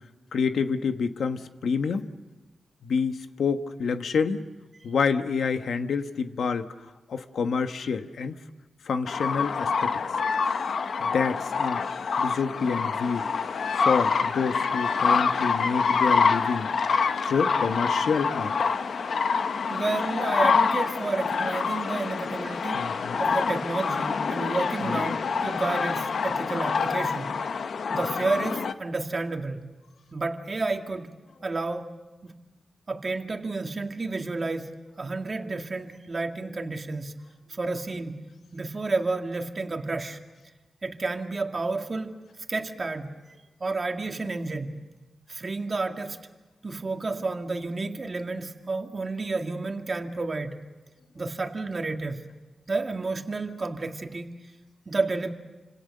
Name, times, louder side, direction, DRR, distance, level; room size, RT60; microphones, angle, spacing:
voice 1, 0.3-2.1 2.8-4.4 4.8-6.7 7.1-8.4 8.8-9.9 11.0-11.8 12.2-13.2 13.8-16.7 17.2-18.6 22.7-23.2 24.8-24.9, left 5 dB, 85° left, 1.3 m, -27 dB
sound 1, 9.1-28.7, left 5 dB, 70° left, 0.9 m, -26 dB
voice 2, 19.7-22.9 23.2-27.3 27.9-29.7 30.1-31.1 31.4-31.9 32.2-32.3 32.9-37.2 37.5-38.2 38.5-40.2 40.8-43.2 43.6-44.8 45.3-46.2 46.6-50.6 51.2-52.2 52.7-54.3 54.9-55.3, right 3 dB, 40° right, 2.1 m, -31 dB
29.0 x 26.5 x 6.7 m
wide cardioid pair, 105°, 0 cm